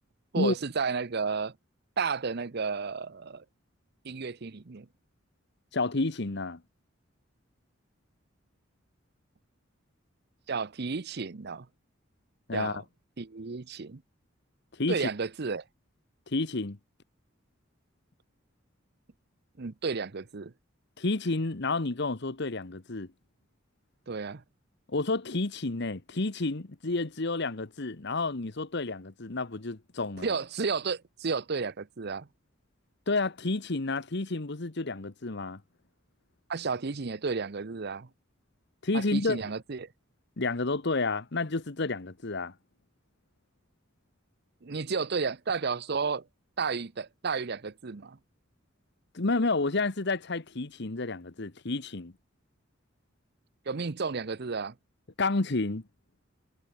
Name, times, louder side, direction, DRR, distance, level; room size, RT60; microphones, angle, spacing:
voice 1, 0.3-1.5 2.0-3.4 4.0-4.9 10.5-11.7 12.5-12.8 13.2-14.0 14.9-15.6 19.6-20.5 24.1-24.4 30.2-32.3 36.5-38.1 38.9-39.9 44.6-46.3 46.6-48.2 53.7-54.7, right 5 dB, 55° right, 0.7 m, -32 dB
voice 2, 5.7-6.6 12.5-12.8 14.8-15.1 16.3-16.8 21.0-23.1 24.9-30.3 33.1-35.6 38.8-39.4 40.4-42.5 49.1-52.1 55.2-55.8, left 3 dB, 60° left, 1.2 m, -30 dB
head